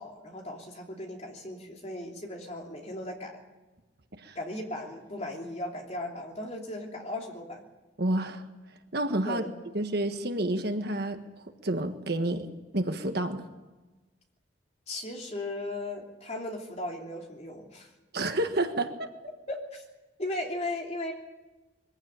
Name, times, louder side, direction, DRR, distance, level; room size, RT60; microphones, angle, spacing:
voice 1, 0.0-3.3 4.3-7.6 9.2-9.5 14.9-17.9 19.5-19.8 20.2-21.1, left 1 dB, 35° left, 1 dB, 3.1 m, -37 dB
voice 2, 8.0-8.4 8.9-9.4 9.7-11.2 11.6-12.5 12.7-13.4 18.1-19.1, right 1 dB, 55° right, 7 dB, 1.5 m, -29 dB
22.0 x 15.5 x 8.9 m, 1.2 s
head